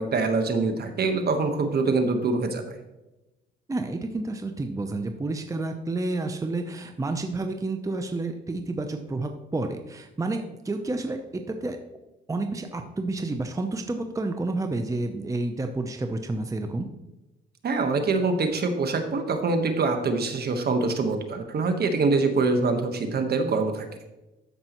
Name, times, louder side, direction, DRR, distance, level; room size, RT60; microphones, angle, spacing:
voice 1, 0.0-2.8 17.6-23.9, right 3 dB, 55° right, 6 dB, 1.3 m, -24 dB
voice 2, 3.7-11.8 12.3-16.9, right 2 dB, 15° right, 6 dB, 0.7 m, -30 dB
13.0 x 5.4 x 3.0 m, 1.0 s
cardioid pair, 90°, 20 cm